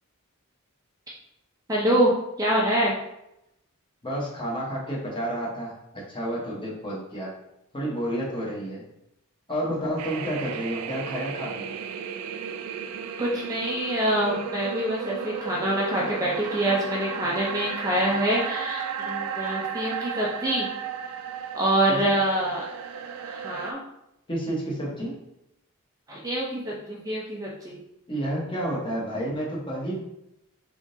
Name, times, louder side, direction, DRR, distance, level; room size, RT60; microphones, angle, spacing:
voice 1, 1.7-2.1 2.4-3.0 13.2-20.7 21.5-22.6 23.3-23.8 26.1-27.8, right 1 dB, 15° right, -4 dB, 0.5 m, -25 dB
voice 2, 4.0-7.3 7.7-8.8 9.5-11.8 21.9-22.1 24.3-25.2 28.1-30.0, right 1 dB, 25° left, -4 dB, 0.9 m, -30 dB
sound 1, 10.0-23.7, right 7 dB, 85° right, 0.4 m, -34 dB
3.7 x 3.6 x 2.6 m, 0.86 s
head